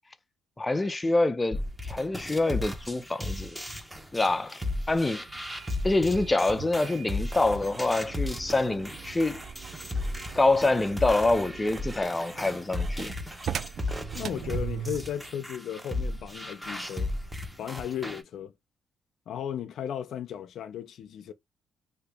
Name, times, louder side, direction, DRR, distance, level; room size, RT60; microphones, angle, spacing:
voice 1, 0.6-1.6 1.8-3.6 4.1-4.6 4.9-5.2 5.8-9.4 10.3-13.1, left 2 dB, 20° left, 0.5 m, -26 dB
sound 1, 1.5-18.2, left 2 dB, 5° right, 0.9 m, -35 dB
sound 2, 5.3-15.2, right 9 dB, 60° right, 0.4 m, -41 dB
sound 3, 7.4-14.5, right 2 dB, 25° right, 1.7 m, -49 dB
voice 2, 14.1-17.1 17.6-18.5 19.3-21.3, left 9 dB, 70° left, 0.4 m, -35 dB
2.8 x 2.5 x 3.4 m
cardioid pair, 90°, 0 cm